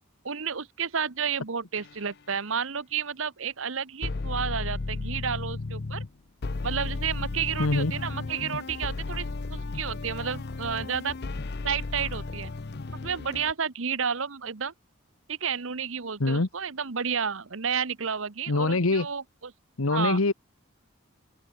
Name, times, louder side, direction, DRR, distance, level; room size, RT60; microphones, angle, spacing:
voice 1, 0.2-6.0 6.6-9.2 9.5-11.2 11.6-12.5 13.0-14.7 15.3-19.5 19.9-20.2, right 6 dB, 70° right, 1.1 m, -31 dB
sound 1, 1.8-2.0 4.0-6.1 6.4-13.5, left 3 dB, 50° left, 0.7 m, -34 dB
voice 2, 7.6-7.9 16.2-16.5 18.5-19.1 19.8-20.3, left 2 dB, 85° left, 1.3 m, -24 dB
head